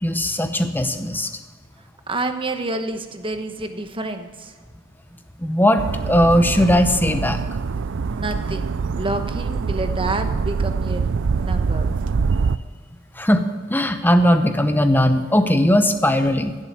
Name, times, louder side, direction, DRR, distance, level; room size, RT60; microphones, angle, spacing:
voice 1, 0.0-1.3 5.4-7.4 13.2-13.4 13.7-16.6, equal, 10° left, 8 dB, 0.9 m, -18 dB
voice 2, 2.1-4.5 8.0-11.1 11.3-11.9, right 2 dB, 25° right, 7 dB, 1.1 m, -28 dB
sound 1, 5.8-12.6, right 5 dB, 60° right, 0.4 m, -24 dB
16.0 x 7.7 x 8.1 m, 1.4 s
head